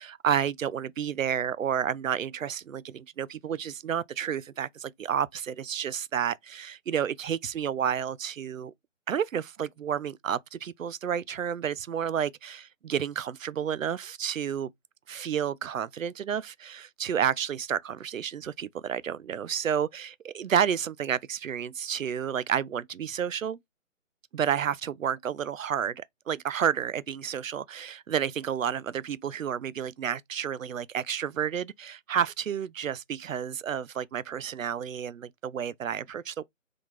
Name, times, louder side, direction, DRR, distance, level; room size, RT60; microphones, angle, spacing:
voice 1, 0.0-8.7 9.1-14.7 15.1-23.6 24.3-36.4, right 8 dB, 75° right, 0.5 m, -30 dB
3.8 x 3.3 x 3.6 m
figure-of-eight pair, 145°, 40 cm